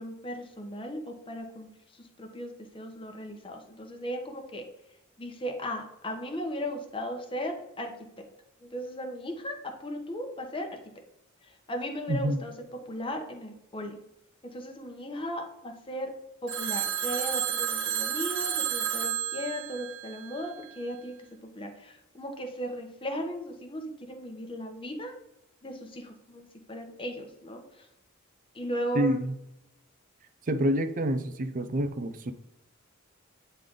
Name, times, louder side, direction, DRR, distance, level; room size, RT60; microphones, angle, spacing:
voice 1, 0.0-4.7 5.2-7.9 8.6-10.8 11.4-12.5 12.9-14.0 14.5-16.1 16.4-25.1 25.6-27.9 28.5-29.2, equal, 25° left, 4 dB, 1.0 m, -36 dB
voice 2, 12.1-12.4 28.9-29.4 30.5-32.3, right 1 dB, 40° right, 9 dB, 0.5 m, -27 dB
Telephone, 16.5-20.7, right 9 dB, 60° right, 1.5 m, -31 dB
9.3 x 3.3 x 3.7 m, 0.88 s
head